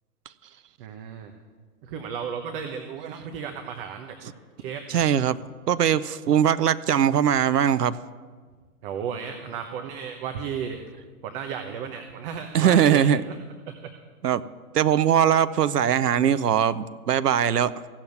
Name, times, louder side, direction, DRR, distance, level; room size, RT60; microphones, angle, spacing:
voice 1, 0.8-1.3 1.8-4.2 4.6-4.9 8.8-10.9 11.2-13.4 13.7-13.9, right 7 dB, 35° right, 6 dB, 1.1 m, -34 dB
voice 2, 4.9-5.4 5.7-8.0 12.5-13.2 14.2-14.4 14.7-17.7, right 9 dB, 90° right, 15 dB, 0.7 m, -21 dB
16.0 x 7.3 x 9.4 m, 1.5 s
hypercardioid pair, 130°, 46 cm